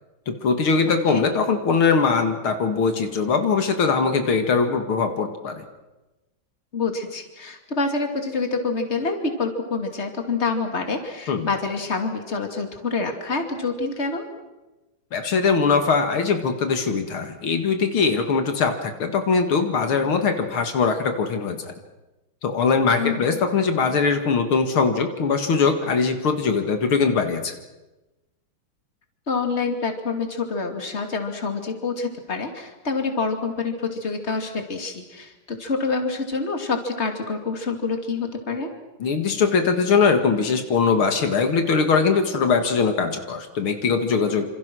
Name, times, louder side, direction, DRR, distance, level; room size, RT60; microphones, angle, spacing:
voice 1, 0.3-5.6 11.3-11.5 15.1-21.7 22.4-27.5 39.0-44.5, left 5 dB, 80° left, 6 dB, 2.8 m, -21 dB
voice 2, 6.7-14.2 23.0-23.3 29.3-38.7, left 4 dB, 30° left, 5 dB, 3.0 m, -27 dB
27.5 x 27.0 x 6.3 m, 1.1 s
omnidirectional pair, 2.3 m